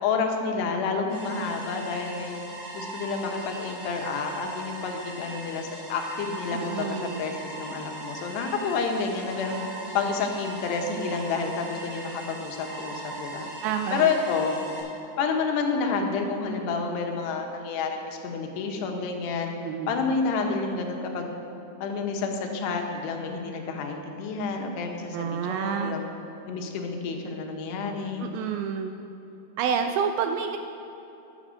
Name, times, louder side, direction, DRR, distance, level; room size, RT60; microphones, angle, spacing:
voice 1, 0.0-2.4 2.7-9.6 9.9-13.5 13.9-14.6 15.2-19.5 19.9-21.3 21.8-26.1 26.4-28.3, left 5 dB, 85° left, 3 dB, 3.1 m, -29 dB
sound 1, 1.1-14.8, right 2 dB, 60° right, 5.0 m, -39 dB
voice 2, 6.5-7.3 13.6-14.1 19.6-20.1 25.1-26.0 28.2-29.0 29.6-30.6, right 7 dB, 85° right, 6 dB, 2.2 m, -29 dB
11.0 x 7.8 x 6.2 m, 3.0 s
omnidirectional pair, 4.7 m